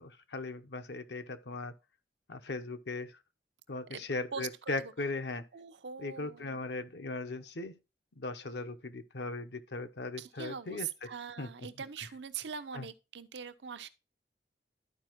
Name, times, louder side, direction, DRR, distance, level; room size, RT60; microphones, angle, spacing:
voice 1, 0.0-1.7 2.3-3.2 3.7-5.5 6.0-7.8 8.2-10.9 11.4-11.5 12.7-12.9, left 3 dB, 75° left, 0.8 m, -38 dB
voice 2, 4.3-4.9 5.5-6.6 10.2-13.9, right 7 dB, 90° right, 0.7 m, -42 dB
12.5 x 4.9 x 3.0 m
head